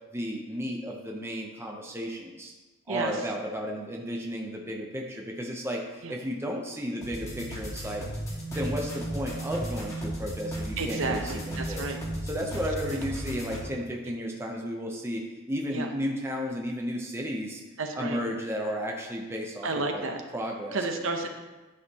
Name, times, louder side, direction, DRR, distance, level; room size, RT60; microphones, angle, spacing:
voice 1, 0.1-2.5 2.9-8.1 8.5-11.9 12.2-17.6 18.0-20.0 20.3-20.8, equal, 10° right, 0 dB, 0.6 m, -33 dB
voice 2, 2.9-3.2 6.0-6.2 10.8-12.0 12.8-13.0 15.7-15.9 17.8-18.2 19.6-20.2 20.7-21.3, right 3 dB, 60° right, 4 dB, 0.8 m, -31 dB
sound 1, 7.0-13.6, right 1 dB, 15° left, 1.7 m, -35 dB
9.6 x 6.4 x 2.9 m, 1.2 s
head